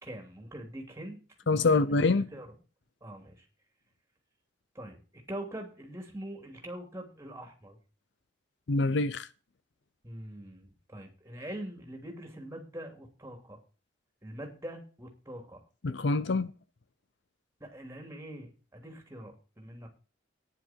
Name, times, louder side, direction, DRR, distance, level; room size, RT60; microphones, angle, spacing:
voice 1, 0.0-2.5 3.0-3.4 4.7-5.0 5.3-7.8 10.0-13.6 14.2-15.6 17.6-19.9, right 1 dB, 15° right, 2.9 m, -43 dB
voice 2, 1.5-2.3 8.7-9.3 15.8-16.5, left 3 dB, 65° left, 0.6 m, -25 dB
11.5 x 10.0 x 4.5 m
head